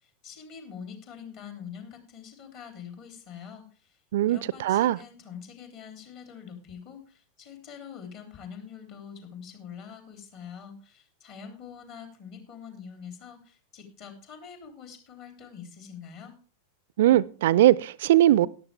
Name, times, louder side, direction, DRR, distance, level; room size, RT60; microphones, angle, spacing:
voice 1, 0.0-4.0 4.2-16.4, left 7 dB, 40° left, 3.4 m, -45 dB
voice 2, 4.1-5.0 17.0-18.5, right 13 dB, 55° right, 0.5 m, -20 dB
13.5 x 11.5 x 3.5 m
figure-of-eight pair, 90°, 0 cm